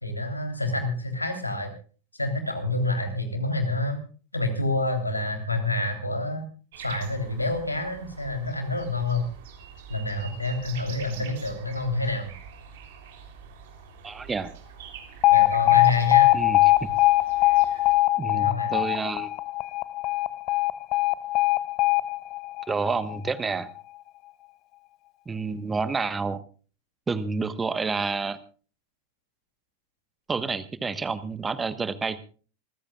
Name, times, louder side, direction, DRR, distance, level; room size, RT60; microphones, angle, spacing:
voice 1, 0.0-1.7 2.1-4.0 4.3-6.4 6.8-9.3 9.9-12.3 15.3-16.3 18.3-18.8, left 2 dB, 85° left, 6 dB, 3.4 m, -28 dB
sound 1, 6.7-17.9, right 7 dB, 60° right, 3.4 m, -45 dB
voice 2, 14.0-14.5 16.3-16.9 18.2-19.3 22.7-23.7 25.3-26.4 27.1-28.4 30.3-32.2, right 4 dB, 15° right, 14 dB, 1.2 m, -29 dB
Alarm, 15.2-23.3, left 18 dB, 40° left, 0.6 m, -21 dB
26.5 x 15.5 x 2.4 m, 0.39 s
figure-of-eight pair, 85°, 0 cm